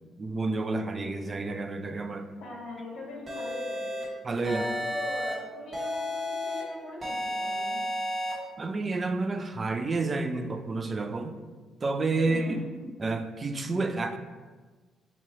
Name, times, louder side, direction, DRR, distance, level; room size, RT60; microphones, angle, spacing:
voice 1, 0.2-2.3 4.2-4.6 8.6-11.4 11.8-12.6 13.0-14.2, right 3 dB, 35° right, 8 dB, 0.3 m, -30 dB
voice 2, 2.4-3.9 4.4-7.8 12.3-12.6, left 2 dB, 70° left, -3 dB, 1.1 m, -41 dB
sound 1, 3.3-4.0 4.4-5.3 5.7-6.6 7.0-8.3, left 1 dB, 20° right, 1.3 m, -32 dB
3.0 x 2.8 x 4.4 m, 1.3 s
cardioid pair, 90°, 0 cm